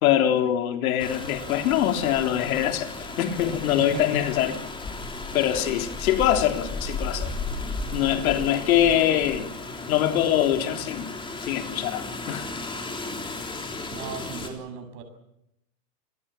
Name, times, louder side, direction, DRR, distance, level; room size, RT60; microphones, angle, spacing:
voice 1, 0.0-2.9 3.2-4.6 5.3-7.3 7.9-9.6 9.9-11.1 11.4-12.5, left 11 dB, 65° left, 3.6 m, -23 dB
Rain, 1.0-14.5, left 3 dB, 10° left, 3.6 m, -35 dB
voice 2, 13.9-15.0, right 7 dB, 40° right, 7.4 m, -36 dB
28.5 x 20.5 x 7.4 m
supercardioid pair, 145°, 46 cm